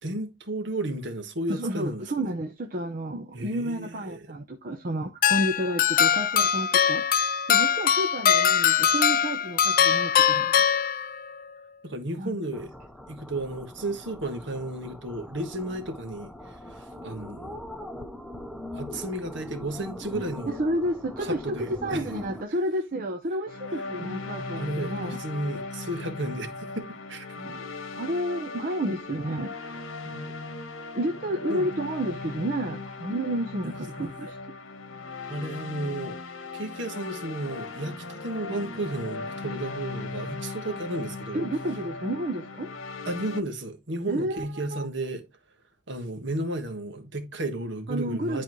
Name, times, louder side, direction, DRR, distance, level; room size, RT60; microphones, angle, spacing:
voice 1, 0.0-2.3 3.3-4.2 11.8-12.7 13.1-17.6 18.7-20.6 21.2-22.0 24.6-27.3 30.0-30.3 31.5-31.7 34.0-34.1 35.3-36.2 36.5-41.4 43.1-45.3 45.9-48.4, right 1 dB, 65° right, 1.6 m, -33 dB
voice 2, 1.5-7.0 7.5-10.5 12.2-12.3 20.6-25.2 27.4-29.9 30.9-34.4 41.3-42.7 44.1-44.9 47.9-48.4, right 1 dB, 45° right, 0.8 m, -31 dB
sound 1, 5.2-11.4, left 8 dB, 45° left, 0.4 m, -22 dB
sound 2, 12.5-22.4, left 1 dB, ahead, 0.6 m, -41 dB
sound 3, 23.5-43.4, left 3 dB, 80° left, 1.0 m, -38 dB
11.0 x 4.2 x 3.0 m
head